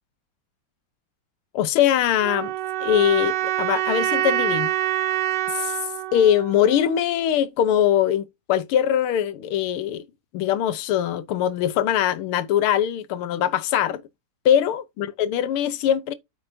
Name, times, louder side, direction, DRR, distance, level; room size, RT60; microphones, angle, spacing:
voice 1, 1.5-2.5 2.8-4.7 5.5-5.8 6.1-10.0 10.3-14.0 14.4-16.1, left 10 dB, 80° left, 1.7 m, -22 dB
sound 1, 2.2-7.2, right 13 dB, 70° right, 1.1 m, -26 dB
8.6 x 7.7 x 2.7 m
omnidirectional pair, 2.4 m